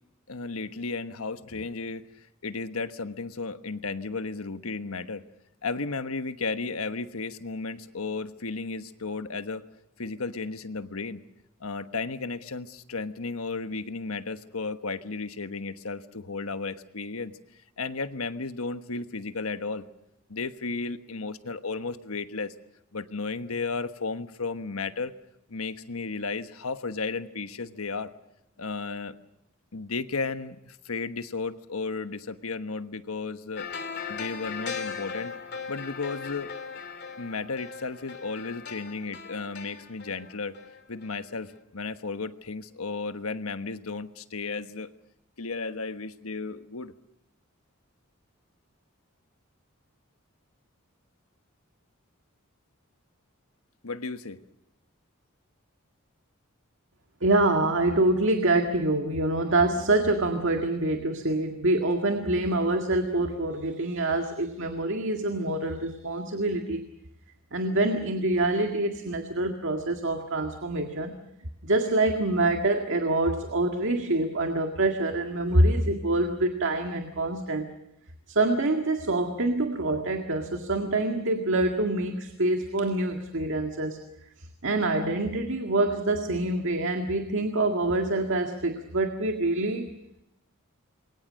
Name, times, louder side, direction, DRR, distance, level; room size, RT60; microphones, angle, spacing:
voice 1, 0.3-2.1 2.4-5.2 5.6-9.6 10.0-11.2 11.6-17.4 17.8-19.8 20.3-22.5 22.9-25.1 25.5-28.1 28.6-29.1 29.7-33.7 34.1-35.3 35.7-36.5 37.2-40.5 40.9-44.9 45.4-46.9 53.8-54.4, left 4 dB, 85° left, 10 dB, 1.3 m, -34 dB
sound 1, 33.6-41.2 41.5-41.6, left 6 dB, 50° left, 2.7 m, -38 dB
voice 2, 57.2-66.8 67.5-71.2 71.6-77.7 78.3-84.0 84.6-89.9, right 2 dB, 65° right, 5 dB, 2.0 m, -26 dB
27.5 x 22.5 x 6.4 m, 0.83 s
head